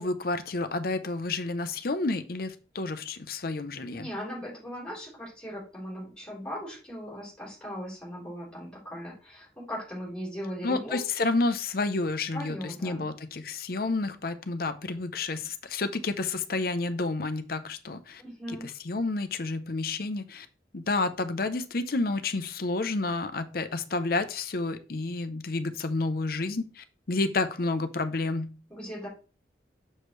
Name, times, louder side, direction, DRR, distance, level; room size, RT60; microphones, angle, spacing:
voice 1, 0.0-4.1 10.6-18.2 18.9-20.5 20.7-28.6, left 3 dB, 55° left, 10 dB, 0.7 m, -30 dB
voice 2, 3.9-11.0 12.3-13.0 18.2-18.7 28.7-29.1, equal, 5° left, -4 dB, 3.7 m, -38 dB
6.5 x 6.4 x 3.1 m, 0.36 s
head